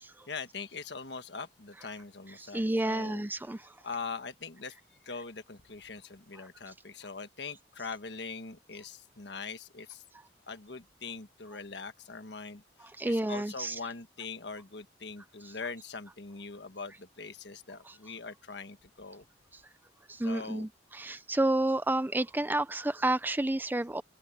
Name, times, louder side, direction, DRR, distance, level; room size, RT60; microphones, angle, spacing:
voice 1, 0.3-3.2 3.8-10.0 10.5-19.2 20.2-20.7, left 4 dB, 65° left, 1.5 m, -42 dB
voice 2, 2.4-3.7 12.8-13.8 17.9-18.0 20.1-24.0, right 1 dB, 10° right, 0.5 m, -30 dB
open air
head